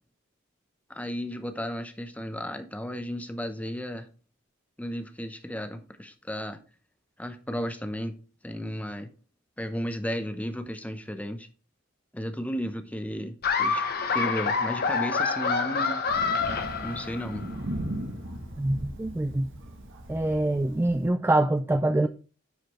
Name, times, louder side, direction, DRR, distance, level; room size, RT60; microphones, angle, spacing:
voice 1, 0.9-4.1 4.8-6.6 7.2-8.2 8.4-9.1 9.6-11.5 12.1-13.8 14.1-16.3 16.8-17.5, equal, 5° left, 0.8 m, -34 dB
Laughter, 13.4-17.5, left 5 dB, 50° left, 1.1 m, -27 dB
Thunder, 16.1-21.1, right 1 dB, 65° right, 1.2 m, -38 dB
voice 2, 18.6-19.5 20.1-22.1, right 1 dB, 10° right, 0.3 m, -25 dB
10.0 x 4.9 x 3.1 m
head